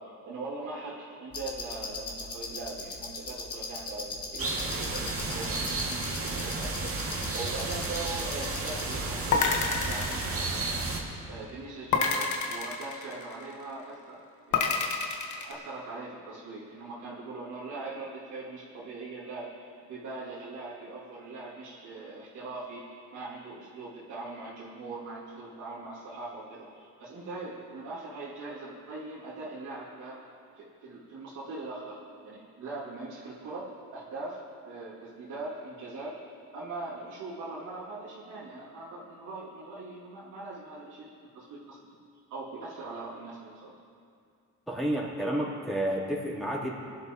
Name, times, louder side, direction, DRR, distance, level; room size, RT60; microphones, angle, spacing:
voice 1, 0.0-10.8 11.3-14.2 14.5-14.8 15.3-30.2 30.6-36.2 36.5-41.8 42.3-43.7, right 3 dB, 90° right, -9 dB, 2.7 m, -41 dB
sound 1, 1.3-8.9, left 3 dB, 50° left, 2.4 m, -40 dB
sound 2, 4.4-11.0, right 3 dB, 50° right, 2.3 m, -32 dB
sound 3, 9.3-11.0 11.9-13.5 14.5-15.5, left 5 dB, 75° left, 1.4 m, -28 dB
voice 2, 44.7-46.8, right 1 dB, ahead, -7 dB, 3.5 m, -30 dB
21.0 x 11.5 x 3.1 m, 2.4 s
cardioid pair, 90°, 30 cm